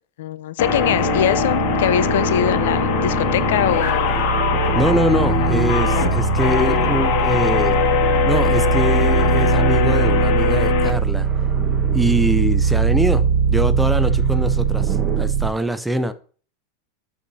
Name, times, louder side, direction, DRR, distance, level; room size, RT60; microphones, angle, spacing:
voice 1, 0.2-4.2, left 10 dB, 80° left, 17 dB, 0.5 m, -22 dB
sound 1, 0.6-10.9, left 7 dB, 55° left, 1.7 m, -21 dB
sound 2, 0.6-15.5, right 6 dB, 80° right, 1.2 m, -21 dB
sound 3, 3.1-15.3, right 6 dB, 25° right, 0.9 m, -38 dB
voice 2, 4.7-7.8 8.3-11.3 11.9-16.1, right 1 dB, 5° right, 12 dB, 0.4 m, -23 dB
12.0 x 4.7 x 2.7 m, 0.43 s
supercardioid pair, 155°, 0 cm